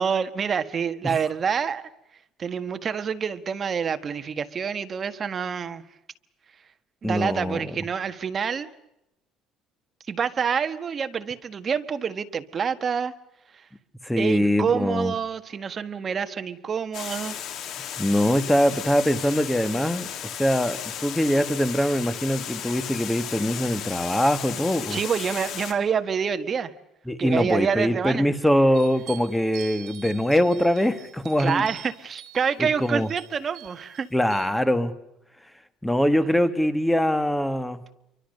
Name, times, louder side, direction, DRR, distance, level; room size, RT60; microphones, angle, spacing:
voice 1, 0.0-1.8 2.4-5.8 7.0-8.7 10.1-13.1 13.5-13.7 14.2-17.4 24.9-26.7 27.2-28.2 31.4-34.1, right 6 dB, 30° right, 9 dB, 1.6 m, -27 dB
voice 2, 7.0-7.7 14.0-15.1 18.0-20.1 20.4-25.0 27.1-31.7 32.6-33.1 34.1-34.9 35.8-37.8, equal, 5° left, 12 dB, 1.4 m, -23 dB
Water, 16.9-25.7, left 9 dB, 50° left, 3.4 m, -35 dB
sound 1, 28.7-34.5, right 13 dB, 55° right, 4.6 m, -45 dB
29.0 x 24.0 x 6.6 m, 0.86 s
cardioid pair, 160°, 0 cm